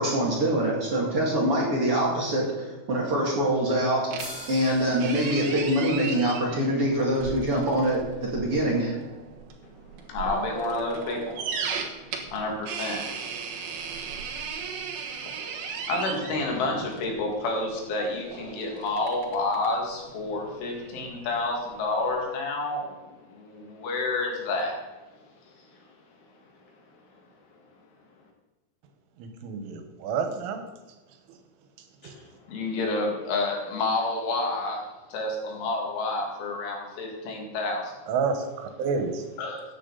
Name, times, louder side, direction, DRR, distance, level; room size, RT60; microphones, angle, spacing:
voice 1, 0.0-9.0, right 1 dB, 40° right, -4 dB, 2.2 m, -25 dB
sound 1, 4.1-22.2, right 6 dB, 65° right, 2.7 m, -37 dB
sound 2, 4.2-7.7, equal, 10° left, 4.3 m, -45 dB
voice 2, 10.1-11.4 12.3-13.1 15.4-24.8 32.0-34.8 35.1-37.9 39.4-39.6, left 2 dB, 80° left, 0 dB, 4.8 m, -29 dB
voice 3, 29.2-30.7 32.0-32.1 38.1-39.3, right 5 dB, 85° right, 6 dB, 3.8 m, -29 dB
14.5 x 9.6 x 4.1 m, 1.2 s
omnidirectional pair, 5.5 m